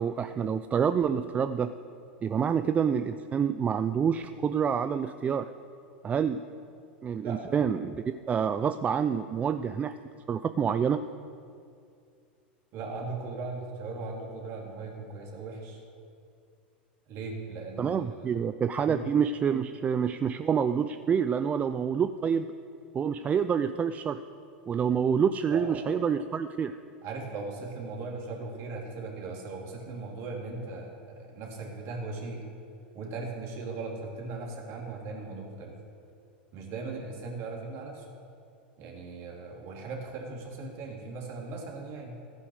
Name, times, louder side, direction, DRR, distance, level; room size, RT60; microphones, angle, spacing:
voice 1, 0.0-1.7 2.2-5.5 6.0-6.4 7.0-9.9 10.3-11.0 17.8-22.5 22.9-24.2 24.7-26.8, right 7 dB, 25° right, 11 dB, 0.4 m, -27 dB
voice 2, 12.7-15.8 17.1-18.4 18.9-19.0 25.5-25.9 27.0-32.5 32.9-35.8 36.5-38.1 38.8-42.2, right 3 dB, 50° right, 0 dB, 3.1 m, -38 dB
14.0 x 9.8 x 6.5 m, 2.4 s
hypercardioid pair, 95°, 6 cm